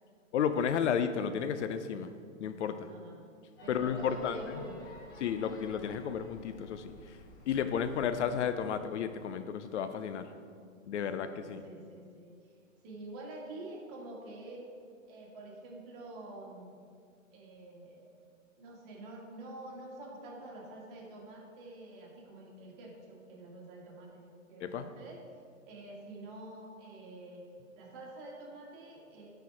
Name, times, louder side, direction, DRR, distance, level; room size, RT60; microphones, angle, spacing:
voice 1, 0.3-2.1 2.4-2.9 3.7-4.4 5.2-6.9 7.5-10.3 10.9-11.6 24.6-24.9, left 7 dB, 60° left, 10 dB, 0.6 m, -32 dB
voice 2, 2.9-3.2 3.6-4.9 11.2-12.3 12.8-14.7 15.1-16.8 17.3-18.1 18.6-25.2 25.7-27.5 27.8-29.3, right 2 dB, 40° right, -2 dB, 2.0 m, -47 dB
sound 1, 3.6-8.9, left 2 dB, 25° left, 1.8 m, -54 dB
9.5 x 4.5 x 4.8 m, 2.2 s
hypercardioid pair, 130°, 40 cm